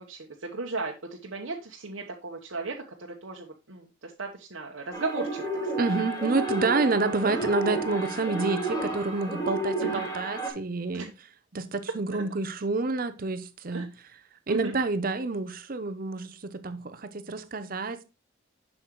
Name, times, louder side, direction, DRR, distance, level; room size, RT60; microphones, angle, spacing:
voice 1, 0.1-5.9 9.8-10.0 10.9-11.1 12.1-12.2 13.7-13.8 14.5-14.7, right 3 dB, 80° right, 1.1 m, -36 dB
sound 1, 4.9-10.5, right 2 dB, 20° left, 2.1 m, -31 dB
voice 2, 5.8-11.1 11.5-13.9 14.5-18.0, right 3 dB, 45° right, 0.7 m, -28 dB
7.5 x 6.4 x 3.1 m
head